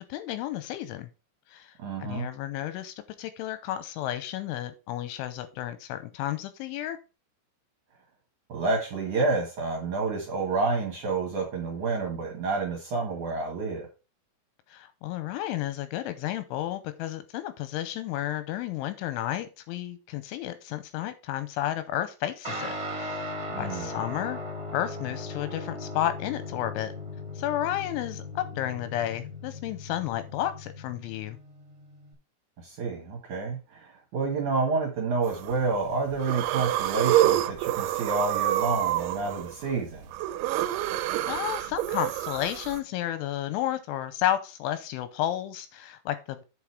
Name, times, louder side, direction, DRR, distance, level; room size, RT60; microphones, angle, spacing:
voice 1, 0.1-1.1 1.5-1.7 2.0-7.0 14.7-24.4 24.7-26.9 27.4-31.4 41.3-46.4, left 12 dB, 85° left, 3.0 m, -32 dB
voice 2, 1.8-2.3 8.5-13.9 23.5-24.0 32.6-40.1, right 3 dB, 55° right, 2.4 m, -29 dB
Guitar, 22.4-32.1, left 2 dB, 20° right, 1.9 m, -38 dB
sound 1, 35.2-35.7 36.1-42.8, right 14 dB, 80° right, 2.9 m, -27 dB
8.5 x 5.4 x 4.7 m
omnidirectional pair, 5.8 m